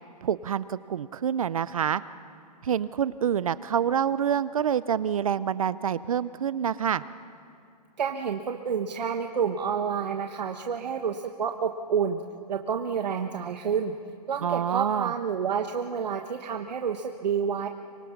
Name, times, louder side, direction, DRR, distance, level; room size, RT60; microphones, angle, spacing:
voice 1, 0.2-2.0 2.6-7.0 14.4-15.1, right 8 dB, 55° right, 17 dB, 0.5 m, -27 dB
voice 2, 8.0-12.2 12.5-13.9 14.3-17.7, right 7 dB, 80° right, 4 dB, 1.3 m, -29 dB
25.0 x 24.5 x 5.8 m, 2.7 s
hypercardioid pair, 175°, 21 cm